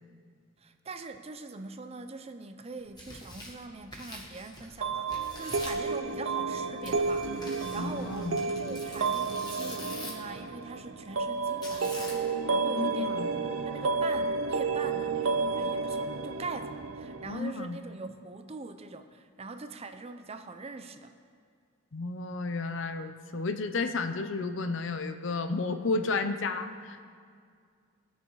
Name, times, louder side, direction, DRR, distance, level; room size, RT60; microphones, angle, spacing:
voice 1, 0.6-13.2 13.6-21.1, right 3 dB, 30° right, 8 dB, 0.5 m, -42 dB
Tearing, 2.8-4.8 5.1-5.9 6.8-10.3 11.6-12.4, left 1 dB, 20° left, 1.7 m, -45 dB
sound 1, 4.8-17.4, right 4 dB, 75° right, 0.6 m, -31 dB
voice 2, 7.8-8.4 12.7-13.3 17.3-17.8 21.9-27.0, left 3 dB, 65° left, 8 dB, 0.6 m, -32 dB
20.0 x 6.7 x 4.7 m, 2.2 s
head